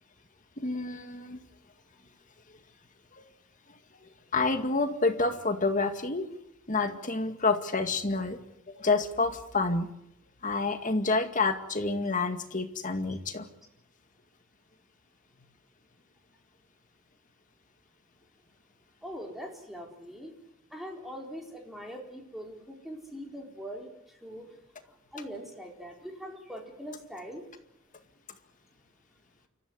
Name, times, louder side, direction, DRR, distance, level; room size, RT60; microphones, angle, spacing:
voice 1, 0.6-1.4 3.2-3.3 4.3-6.3 6.7-8.4 8.7-9.9 10.4-13.5, left 3 dB, 35° left, 7 dB, 2.1 m, -28 dB
voice 2, 19.0-20.3 20.7-24.5 24.8-27.4, equal, ahead, 1 dB, 4.2 m, -42 dB
29.0 x 14.5 x 9.6 m, 0.83 s
head